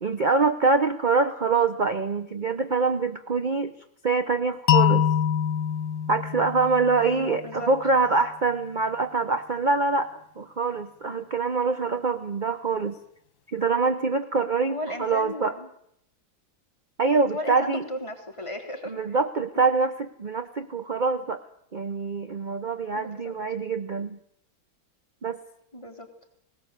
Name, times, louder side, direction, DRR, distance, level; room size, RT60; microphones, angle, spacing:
voice 1, 0.0-3.7 4.0-5.1 6.1-13.0 13.5-15.5 17.0-17.8 18.9-21.4 21.7-24.2 25.2-25.4, right 4 dB, 45° right, 9 dB, 0.6 m, -25 dB
sound 1, 4.7-7.6, left 9 dB, 80° left, 1.8 m, -24 dB
voice 2, 7.0-7.7 14.7-15.7 17.1-19.2 22.9-23.3 25.7-26.1, left 1 dB, 15° left, 1 dB, 3.1 m, -35 dB
19.5 x 19.0 x 8.2 m, 0.73 s
omnidirectional pair, 2.1 m